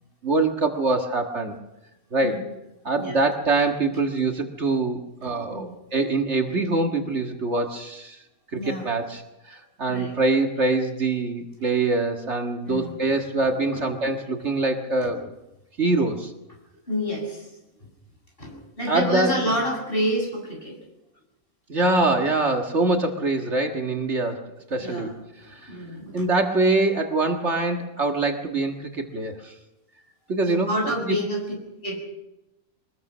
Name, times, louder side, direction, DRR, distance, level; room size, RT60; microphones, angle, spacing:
voice 1, 0.2-1.6 2.1-2.5 2.8-8.2 8.5-15.2 15.8-16.3 18.9-19.5 21.7-25.1 25.4-25.8 26.1-29.5 30.3-30.7 31.1-31.2, right 3 dB, 55° right, 4 dB, 2.0 m, -24 dB
voice 2, 2.9-3.2 5.2-5.7 8.5-8.9 9.9-10.1 12.7-13.2 13.7-13.8 15.0-15.1 16.9-17.5 18.4-20.8 24.8-25.1 25.7-26.3 30.4-31.4 31.8-32.0, equal, 40° left, 0 dB, 7.8 m, -29 dB
24.0 x 20.5 x 6.2 m, 0.94 s
omnidirectional pair, 1.5 m